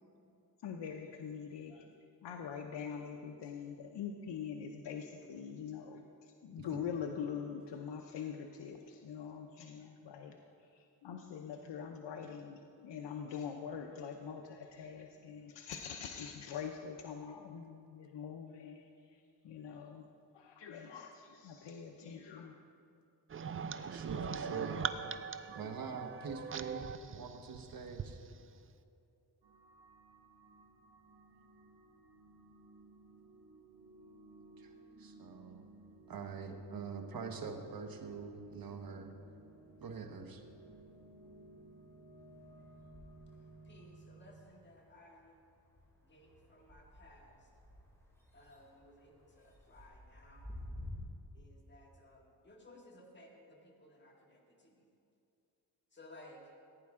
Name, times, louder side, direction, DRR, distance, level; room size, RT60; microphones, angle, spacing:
voice 1, 0.6-1.9 2.2-22.6, left 7 dB, 75° left, 3 dB, 0.7 m, -44 dB
sound 1, 23.3-28.1, right 6 dB, 30° right, 0.4 m, -41 dB
voice 2, 23.8-24.9 25.5-28.2 34.6-35.6 36.1-39.1 39.8-40.4, right 5 dB, 55° right, 5 dB, 1.2 m, -44 dB
sound 2, 29.4-44.4, right 3 dB, 75° right, 1.7 m, -57 dB
sound 3, 38.4-39.0 39.3-51.0, left 1 dB, 5° left, 2.7 m, -55 dB
voice 3, 43.6-45.4 46.0-47.5 48.3-50.5 51.3-54.9 55.9-56.5, left 1 dB, 25° left, -1 dB, 2.0 m, -59 dB
16.0 x 9.4 x 3.6 m, 2.6 s
cardioid pair, 95°, 43 cm